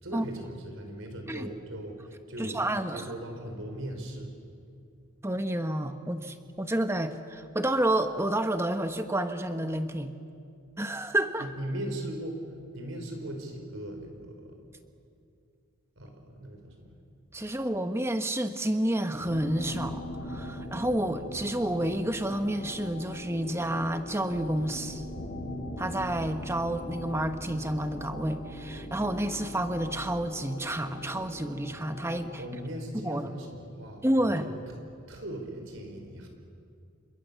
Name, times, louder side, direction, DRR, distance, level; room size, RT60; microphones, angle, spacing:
voice 1, 0.0-2.6 2.9-4.4 11.4-12.4 12.7-14.5 16.0-16.9 17.4-17.6 32.4-34.5 35.1-36.3, right 1 dB, 65° right, 4 dB, 5.0 m, -39 dB
voice 2, 2.4-3.1 5.2-10.1 10.8-11.5 17.3-25.0 25.8-32.4 32.9-33.3 34.0-34.5, right 1 dB, 10° right, 8 dB, 1.1 m, -30 dB
sound 1, 19.1-32.5, left 1 dB, 40° left, 5.8 m, -41 dB
sound 2, 24.3-30.3, equal, 80° right, 3.4 m, -48 dB
29.5 x 26.0 x 7.1 m, 2.4 s
head